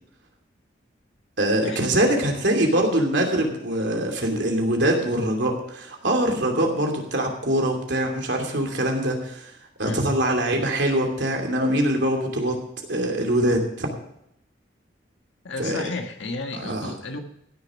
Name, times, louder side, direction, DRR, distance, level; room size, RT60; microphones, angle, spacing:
voice 1, 1.4-9.5 9.8-12.6 12.9-13.9 15.6-15.8 16.6-16.9, right 1 dB, 65° right, 2 dB, 2.8 m, -23 dB
voice 2, 15.4-17.2, left 2 dB, 85° left, 4 dB, 1.5 m, -32 dB
15.5 x 6.9 x 6.3 m, 0.76 s
head